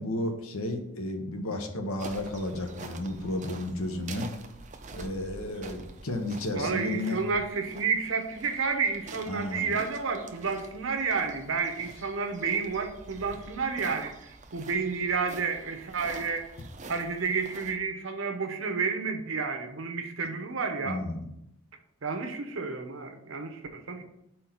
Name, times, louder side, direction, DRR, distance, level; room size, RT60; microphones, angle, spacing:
voice 1, 0.0-4.3 4.9-7.2 9.3-9.7 20.8-21.3, left 1 dB, 75° left, 5 dB, 0.9 m, -33 dB
sound 1, 2.0-17.8, right 3 dB, 35° right, 0.5 m, -47 dB
voice 2, 6.5-16.5 16.9-21.0 22.0-24.0, right 5 dB, 65° right, 6 dB, 0.8 m, -30 dB
4.5 x 4.3 x 5.6 m, 0.81 s
head